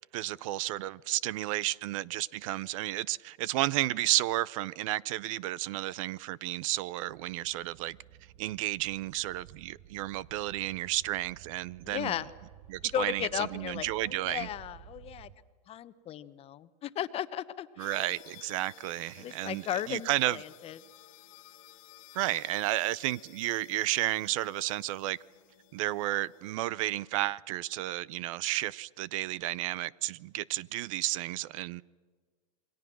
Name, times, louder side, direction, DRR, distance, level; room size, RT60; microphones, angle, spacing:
voice 1, 0.1-8.0 8.4-12.1 12.7-14.5 17.8-20.4 22.1-25.2 25.7-31.8, right 16 dB, 55° right, 0.6 m, -32 dB
sound 1, 7.1-15.4, right 12 dB, 35° right, 0.9 m, -54 dB
voice 2, 11.8-12.3 12.9-15.3 15.7-18.0 19.2-20.8, left 11 dB, 30° left, 1.1 m, -36 dB
sound 2, 17.8-26.6, left 14 dB, 60° left, 1.5 m, -55 dB
28.0 x 22.5 x 6.2 m
hypercardioid pair, 120°, 20 cm